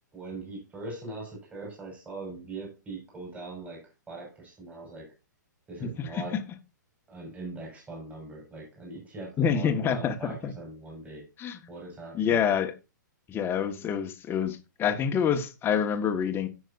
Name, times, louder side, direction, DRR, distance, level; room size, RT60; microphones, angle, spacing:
voice 1, 0.1-5.1 5.7-6.4 7.1-11.3 11.7-12.4, right 2 dB, 15° right, 5.5 m, -41 dB
voice 2, 5.8-6.2 9.4-10.5 11.4-11.6 12.1-12.7 13.3-16.5, left 7 dB, 20° left, 1.6 m, -27 dB
17.0 x 6.4 x 2.6 m
hypercardioid pair, 125°, 10 cm